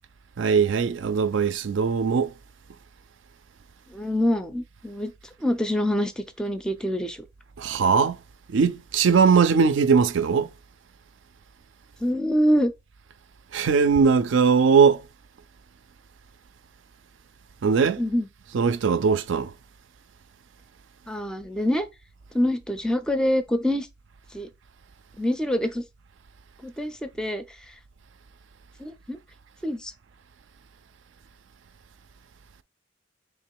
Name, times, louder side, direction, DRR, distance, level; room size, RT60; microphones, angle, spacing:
voice 1, 0.4-2.3 7.6-8.2 8.5-10.5 13.5-15.1 17.6-18.0 18.5-19.5, right 5 dB, 70° right, 0.4 m, -20 dB
voice 2, 3.9-5.1 5.4-7.2 12.0-12.7 18.0-18.3 21.1-21.9 22.3-23.9 24.3-24.5 25.2-25.8 26.6-27.7 28.8-29.2 29.6-29.9, equal, 5° left, 0.4 m, -25 dB
3.7 x 3.0 x 4.5 m
head